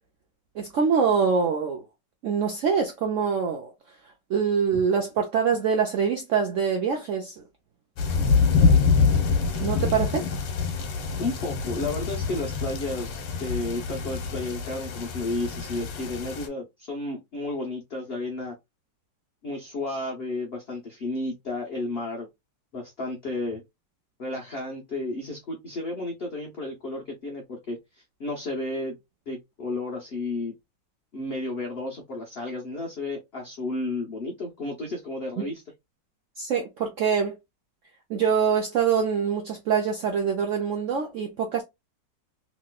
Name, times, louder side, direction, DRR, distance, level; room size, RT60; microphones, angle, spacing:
voice 1, 0.6-1.8 2.2-3.7 4.3-7.4 9.6-10.3 35.4-35.5 36.4-37.4 38.1-41.6, right 6 dB, 85° right, 0.6 m, -24 dB
sound 1, 8.0-16.5, left 5 dB, 85° left, 1.4 m, -25 dB
voice 2, 11.2-18.6 19.4-22.3 22.7-23.6 24.2-27.8 28.2-29.0 29.3-30.5 31.1-35.6, left 2 dB, 60° left, 0.6 m, -32 dB
2.9 x 2.9 x 2.2 m
omnidirectional pair, 1.9 m